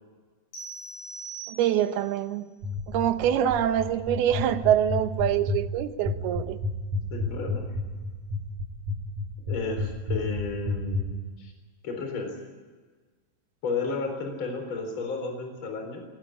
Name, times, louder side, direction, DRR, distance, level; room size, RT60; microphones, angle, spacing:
sound 1, 0.5-2.1, right 4 dB, 70° left, 6.8 m, -41 dB
voice 1, 1.5-2.5 2.9-6.6, right 11 dB, 75° right, 10 dB, 2.9 m, -25 dB
sound 2, 2.6-11.0, left 3 dB, 50° right, 5.2 m, -29 dB
voice 2, 7.1-7.7 9.5-11.5 11.8-12.3 13.6-16.0, left 4 dB, 30° left, 4 dB, 4.5 m, -32 dB
23.5 x 18.5 x 9.7 m, 1.4 s
omnidirectional pair, 4.7 m